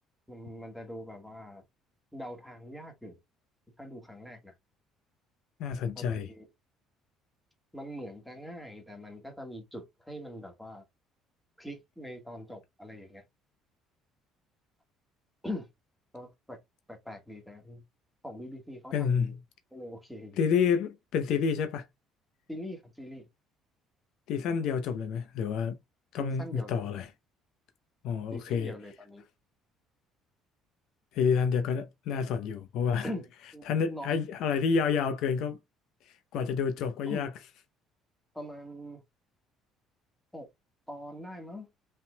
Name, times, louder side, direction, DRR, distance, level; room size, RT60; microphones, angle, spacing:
voice 1, 0.3-1.6 2.1-3.2 3.8-4.5 5.9-6.5 7.7-10.8 11.6-13.2 15.4-15.7 16.1-16.6 16.9-17.8 18.2-19.4 19.7-20.4 22.5-23.3 26.2-26.8 28.3-29.2 33.0-34.1 37.1-37.3 38.3-39.0 40.3-40.5 40.9-41.7, left 1 dB, ahead, 1.6 m, -42 dB
voice 2, 5.6-6.3 18.9-19.4 20.4-21.8 24.3-25.8 26.1-27.0 28.0-28.7 31.1-33.1 33.7-35.6 36.3-37.3, left 6 dB, 70° left, 0.6 m, -29 dB
5.6 x 3.5 x 2.2 m
supercardioid pair, 90°, 0 cm